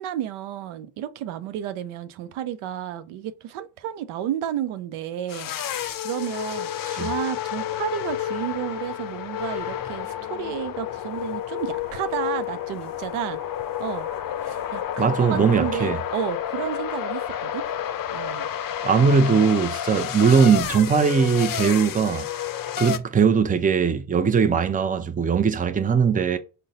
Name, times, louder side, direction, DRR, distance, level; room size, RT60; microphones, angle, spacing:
voice 1, 0.0-5.6 6.0-13.4 13.8-14.1 14.4-17.6 18.1-18.5 19.1-19.2, right 11 dB, 85° right, 0.6 m, -32 dB
sound 1, 5.3-23.0, left 10 dB, 45° left, 0.5 m, -30 dB
voice 2, 15.0-16.0 18.8-22.3 22.8-26.4, right 6 dB, 20° right, 0.5 m, -20 dB
3.9 x 2.2 x 3.8 m
cardioid pair, 70°, 48 cm